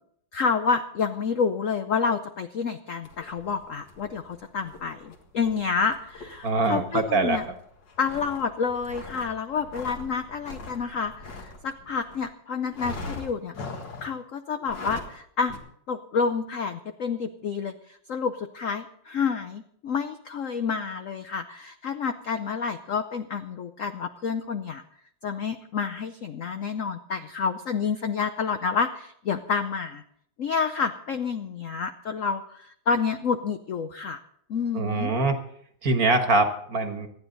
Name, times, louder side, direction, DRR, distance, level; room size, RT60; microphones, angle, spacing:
voice 1, 0.3-7.5 8.0-13.5 14.0-15.5 15.9-24.8 25.2-30.0 30.4-34.2 34.5-35.1, left 5 dB, 80° left, 8 dB, 0.7 m, -29 dB
sound 1, 3.0-12.3 12.7-14.2 14.6-15.2 15.5-15.6, left 3 dB, 60° left, 2.4 m, -42 dB
voice 2, 6.4-7.4 34.7-35.4 35.8-37.1, right 3 dB, 45° right, 6 dB, 1.7 m, -23 dB
26.0 x 9.7 x 4.0 m, 0.66 s
omnidirectional pair, 2.3 m